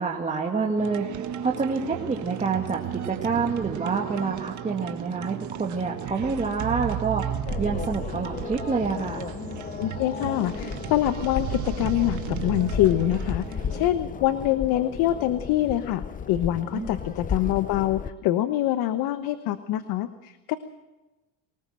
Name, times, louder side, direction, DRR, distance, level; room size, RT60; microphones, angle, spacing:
voice 1, 0.0-7.3 7.6-9.3 16.7-17.0, right 4 dB, 20° right, -1 dB, 2.0 m, -27 dB
sound 1, 0.8-13.9, right 10 dB, 50° right, 1.7 m, -34 dB
sound 2, 7.5-18.1, left 6 dB, 20° left, 0.6 m, -34 dB
voice 2, 9.8-20.6, left 13 dB, 65° left, 11 dB, 1.2 m, -25 dB
24.0 x 19.5 x 6.4 m, 1.1 s
cardioid pair, 120°, 38 cm